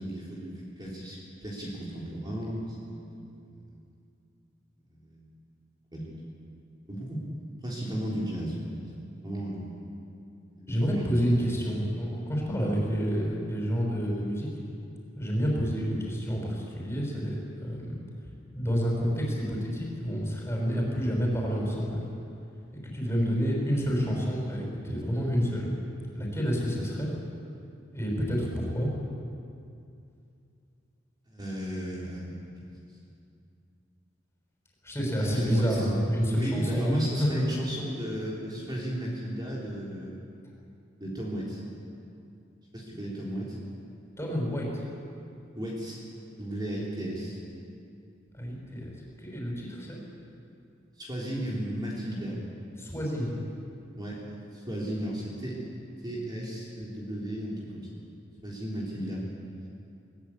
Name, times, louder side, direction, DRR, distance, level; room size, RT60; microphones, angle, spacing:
voice 1, 0.0-3.8 4.9-5.3 5.9-6.1 6.9-9.9 10.5-11.2 31.3-32.4 35.2-35.9 36.3-40.2 41.0-41.6 42.7-43.6 45.6-46.0 46.4-47.4 51.0-52.4 54.0-55.6 56.0-57.9 58.4-59.2, right 1 dB, 25° right, -5 dB, 3.8 m, -35 dB
voice 2, 10.7-14.5 15.1-18.0 18.5-22.0 22.9-25.8 26.1-27.1 27.9-28.9 34.8-37.6 44.2-44.8 48.3-50.0 52.8-53.4, equal, 15° left, -2 dB, 6.1 m, -29 dB
21.5 x 20.0 x 8.6 m, 2.5 s
head